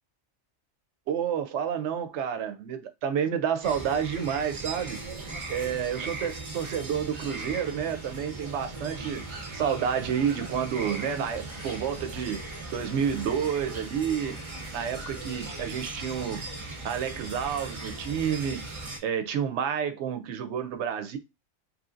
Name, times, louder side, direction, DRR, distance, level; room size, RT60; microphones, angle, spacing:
voice 1, 1.1-5.0 5.5-14.4 14.7-16.4 16.8-18.6 19.0-21.2, right 8 dB, 70° right, 0.8 m, -30 dB
sound 1, 3.6-19.0, right 2 dB, 30° right, 0.6 m, -38 dB
3.2 x 2.7 x 2.4 m
omnidirectional pair, 1.3 m